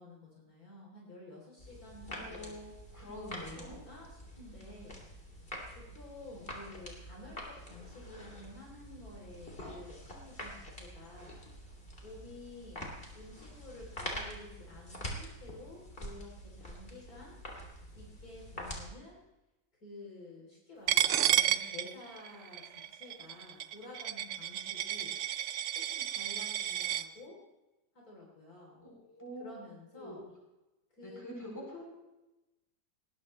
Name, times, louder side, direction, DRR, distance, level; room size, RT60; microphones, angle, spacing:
voice 1, 0.0-2.6 3.1-5.0 5.8-11.4 12.0-17.4 17.9-19.2 19.8-25.2 25.7-27.4 27.9-28.8 29.4-30.3 30.9-31.2, left 2 dB, 55° left, -3 dB, 4.0 m, -51 dB
sound 1, 1.6-18.8, equal, 30° left, 3.2 m, -46 dB
voice 2, 2.1-2.6 2.9-3.8 28.8-29.5 29.9-30.2 31.0-31.8, left 1 dB, 10° left, -3 dB, 7.3 m, -45 dB
Coin (dropping), 20.9-27.0, right 11 dB, 65° right, 0.7 m, -32 dB
19.5 x 19.5 x 3.2 m, 1.0 s
omnidirectional pair, 1.9 m